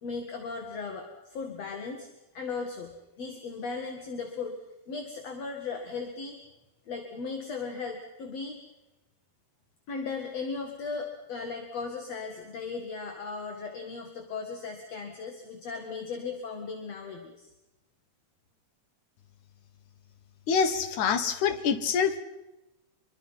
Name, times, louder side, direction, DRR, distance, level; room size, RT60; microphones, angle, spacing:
voice 1, 0.0-2.1 2.3-4.6 4.9-6.4 6.9-8.6 9.9-17.5, left 4 dB, 60° left, 3 dB, 3.1 m, -37 dB
voice 2, 20.5-22.2, left 6 dB, 85° left, 9 dB, 2.9 m, -26 dB
26.0 x 23.5 x 5.9 m, 0.97 s
omnidirectional pair, 3.3 m